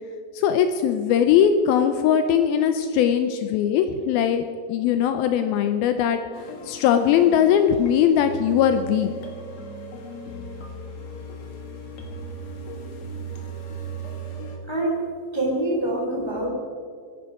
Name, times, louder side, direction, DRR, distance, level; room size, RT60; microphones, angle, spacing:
voice 1, 0.3-6.2 6.7-9.1, left 9 dB, 90° left, 8 dB, 2.2 m, -20 dB
sound 1, 6.3-14.6, right 2 dB, 50° left, 2.5 m, -37 dB
voice 2, 14.7-15.1 15.3-16.5, right 1 dB, 10° left, -1 dB, 1.5 m, -25 dB
23.5 x 11.0 x 5.0 m, 2.2 s
omnidirectional pair, 5.1 m